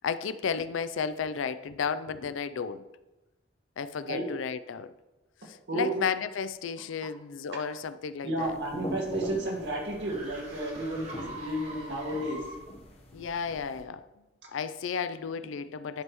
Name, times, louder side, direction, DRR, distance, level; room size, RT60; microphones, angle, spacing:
voice 1, 0.0-2.8 3.8-4.9 5.5-8.6 10.8-11.1 13.1-14.0 14.5-16.0, left 6 dB, 85° left, 0.4 m, -33 dB
voice 2, 8.2-12.4, right 1 dB, 65° right, 1.9 m, -32 dB
sound 1, 8.3-12.8, right 1 dB, 35° right, 1.8 m, -45 dB
sound 2, 8.4-13.8, left 1 dB, 35° left, 1.0 m, -42 dB
11.0 x 5.4 x 3.0 m
head